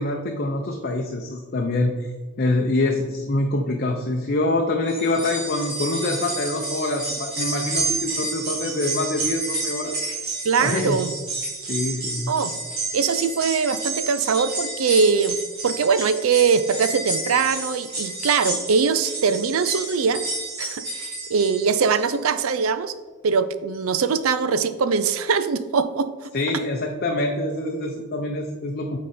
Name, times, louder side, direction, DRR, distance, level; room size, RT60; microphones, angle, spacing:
voice 1, 0.0-2.1 2.4-10.0 10.6-11.1 11.7-12.3 26.3-29.0, left 2 dB, 45° left, 2 dB, 0.6 m, -25 dB
sound 1, 4.8-22.2 22.6-22.7 23.7-23.8, right 2 dB, 50° right, 2.1 m, -30 dB
voice 2, 10.4-11.1 12.3-12.6 12.9-15.4 15.6-20.2 20.6-22.9 23.2-26.3, right 5 dB, 80° right, 12 dB, 0.5 m, -22 dB
8.2 x 4.2 x 4.3 m, 1.2 s
head